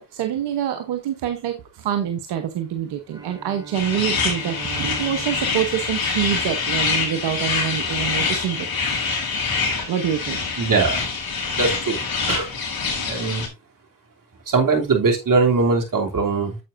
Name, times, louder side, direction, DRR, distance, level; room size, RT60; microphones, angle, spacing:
voice 1, 0.0-8.7 9.9-10.4, right 10 dB, 85° right, 7 dB, 1.0 m, -26 dB
Bowed string instrument, 3.1-7.3, right 4 dB, 10° right, 3.6 m, -41 dB
sound 1, 3.7-13.5, left 4 dB, 65° left, 4.1 m, -25 dB
voice 2, 10.6-11.0 11.5-12.0 12.3-12.5 13.0-13.5 14.5-16.6, right 4 dB, 55° right, 2 dB, 3.0 m, -21 dB
9.6 x 7.6 x 2.6 m, 0.24 s
supercardioid pair, 45°, 39 cm